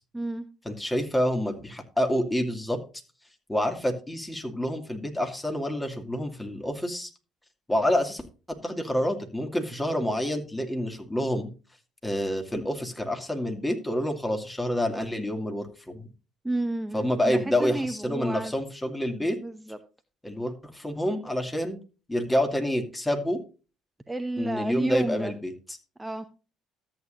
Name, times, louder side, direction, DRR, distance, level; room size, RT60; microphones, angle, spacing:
voice 1, 0.1-0.5 16.4-18.5 19.1-19.8 24.1-25.3 26.0-26.3, right 2 dB, 10° right, 8 dB, 1.0 m, -31 dB
voice 2, 0.6-2.8 3.5-7.1 7.7-8.2 8.6-11.5 12.0-16.1 16.9-19.4 20.2-21.8 22.1-23.4 24.4-25.5, equal, 10° left, 5 dB, 2.5 m, -28 dB
13.5 x 8.6 x 2.6 m, 0.33 s
hypercardioid pair, 55°, 0 cm